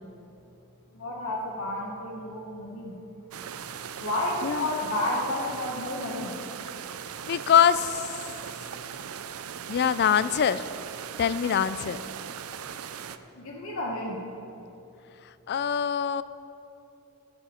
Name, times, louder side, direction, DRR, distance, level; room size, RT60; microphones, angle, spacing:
voice 1, 0.9-3.0 4.0-6.3 13.3-14.2, left 1 dB, 70° left, -4 dB, 1.2 m, -31 dB
sound 1, 3.3-13.2, right 8 dB, 85° right, 0.5 m, -39 dB
voice 2, 7.3-8.0 9.7-10.6 11.2-12.0 15.5-16.2, left 8 dB, 50° left, 15 dB, 0.4 m, -23 dB
13.5 x 10.5 x 4.4 m, 3.0 s
head